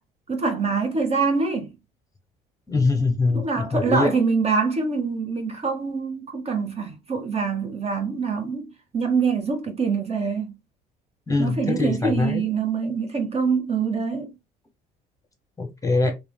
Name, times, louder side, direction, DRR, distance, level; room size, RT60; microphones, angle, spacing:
voice 1, 0.3-1.7 3.3-10.5 11.4-14.3, right 5 dB, 30° right, 0.9 m, -25 dB
voice 2, 2.7-3.5 3.7-4.1 11.3-12.5 15.6-16.1, left 3 dB, 15° left, 1.0 m, -22 dB
3.1 x 2.8 x 2.2 m
supercardioid pair, 70°, 20 cm